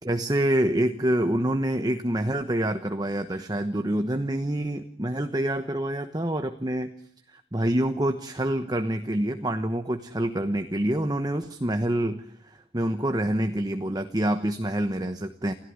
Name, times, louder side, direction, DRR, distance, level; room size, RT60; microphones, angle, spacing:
voice 1, 0.0-6.9 7.3-15.5, right 1 dB, 20° right, 8 dB, 1.1 m, -27 dB
28.5 x 16.5 x 9.5 m, 0.67 s
head